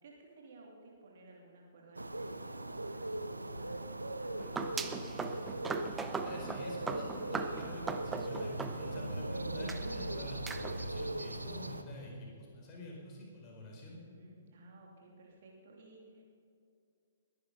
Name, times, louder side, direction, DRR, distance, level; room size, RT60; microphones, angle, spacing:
voice 1, 0.0-5.6 14.0-16.2, right 2 dB, 50° right, -1 dB, 3.0 m, -57 dB
sound 1, 2.0-11.8, right 1 dB, 80° right, 0.8 m, -39 dB
sound 2, 4.4-9.2 9.7-9.8 10.5-10.8, right 4 dB, 10° right, 0.7 m, -40 dB
voice 2, 6.2-14.0, left 1 dB, 25° left, -2 dB, 4.5 m, -47 dB
21.0 x 10.0 x 5.7 m, 2.5 s
figure-of-eight pair, 120°, 0 cm